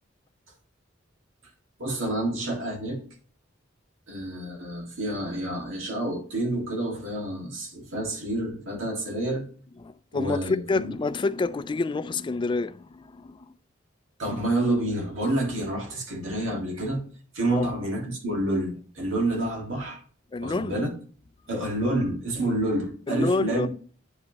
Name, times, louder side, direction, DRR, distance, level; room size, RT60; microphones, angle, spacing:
voice 1, 1.8-3.0 4.1-9.4 10.1-10.9 14.2-17.0 17.3-20.0 20.4-20.9 21.5-23.7, right 1 dB, 90° right, 1.8 m, -28 dB
voice 2, 9.8-13.5 17.5-17.7 20.3-20.8 23.1-23.7, left 3 dB, 25° left, 0.3 m, -28 dB
9.4 x 5.2 x 2.8 m
head